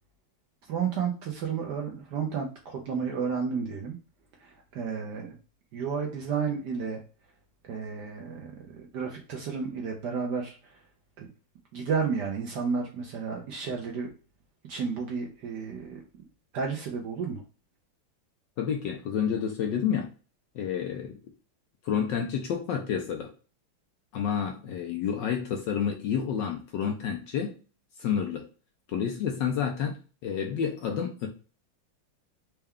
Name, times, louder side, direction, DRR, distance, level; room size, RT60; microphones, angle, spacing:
voice 1, 0.7-4.0 4.4-5.3 5.7-7.0 7.6-10.8 11.2-11.3 11.7-14.1 14.7-16.0 16.5-17.4, right 6 dB, 70° right, 1 dB, 1.0 m, -32 dB
voice 2, 18.6-20.1 20.5-21.2 21.8-23.3 24.1-27.5 28.0-28.5 28.9-31.3, left 7 dB, 75° left, 3 dB, 1.1 m, -29 dB
4.3 x 2.2 x 3.5 m, 0.36 s
omnidirectional pair, 2.4 m